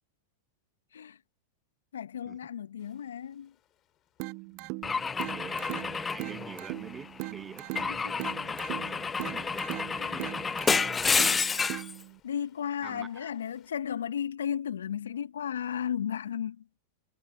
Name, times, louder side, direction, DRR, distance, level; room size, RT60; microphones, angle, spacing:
voice 1, 1.9-3.5 7.9-8.1 9.9-10.3 12.2-16.8, left 9 dB, 75° left, 1.7 m, -35 dB
Ocean, 2.8-13.7, left 13 dB, 35° left, 7.9 m, -66 dB
sound 1, 4.2-12.2, right 31 dB, 50° right, 0.5 m, -40 dB
voice 2, 4.4-4.7 5.3-8.6 8.8-10.6 12.8-13.3, right 6 dB, 20° right, 2.3 m, -47 dB
Car / Engine / Glass, 4.8-7.0 7.7-11.9, left 5 dB, 15° left, 0.5 m, -30 dB
hypercardioid pair, 95°, 0 cm